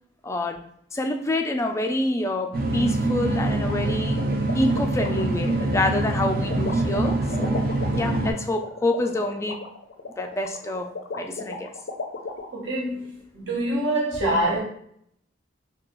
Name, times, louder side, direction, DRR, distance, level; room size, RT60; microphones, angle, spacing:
voice 1, 0.2-4.3 4.5-9.6 10.2-11.7, left 1 dB, 15° left, 5 dB, 0.3 m, -27 dB
sound 1, 2.5-8.3, right 2 dB, 50° right, 0.6 m, -25 dB
sound 2, 3.3-12.5, left 3 dB, 75° left, 0.5 m, -36 dB
voice 2, 12.5-14.6, right 1 dB, 70° right, -5 dB, 1.3 m, -25 dB
5.0 x 2.3 x 3.0 m, 0.66 s
head